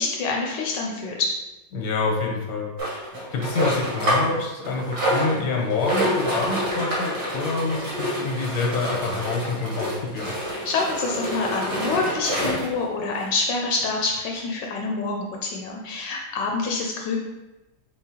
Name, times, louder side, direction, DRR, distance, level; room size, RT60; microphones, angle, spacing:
voice 1, 0.0-1.3 10.5-17.2, left 3 dB, 80° left, 0 dB, 1.3 m, -26 dB
voice 2, 1.7-2.7 3.3-10.3, left 3 dB, 60° left, 0 dB, 1.3 m, -26 dB
sound 1, 2.8-4.3 4.6-12.8 13.5-13.6 13.8-13.9 14.4-14.5, equal, 65° right, 1.9 m, -27 dB
4.8 x 3.7 x 2.8 m, 1.0 s
omnidirectional pair, 1.9 m